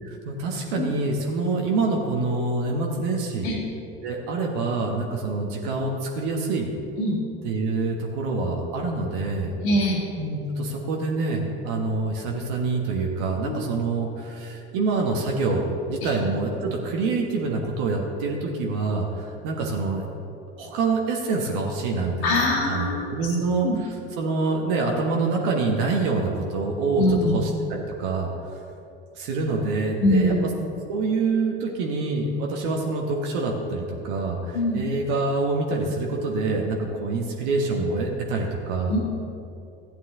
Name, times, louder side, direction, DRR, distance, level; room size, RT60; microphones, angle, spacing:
voice 1, 0.0-3.5 4.0-6.7 7.4-9.5 10.2-20.0 20.6-28.3 29.1-30.3 30.9-39.0, right 3 dB, 65° right, 0 dB, 1.4 m, -26 dB
voice 2, 9.6-10.0 13.4-13.6 16.0-16.1 22.2-23.1 23.6-23.7 27.0-27.4 30.0-30.4 34.5-34.8 38.9-39.0, left 1 dB, 70° left, -6 dB, 1.9 m, -22 dB
13.5 x 9.1 x 3.7 m, 2.7 s
hypercardioid pair, 70°, 31 cm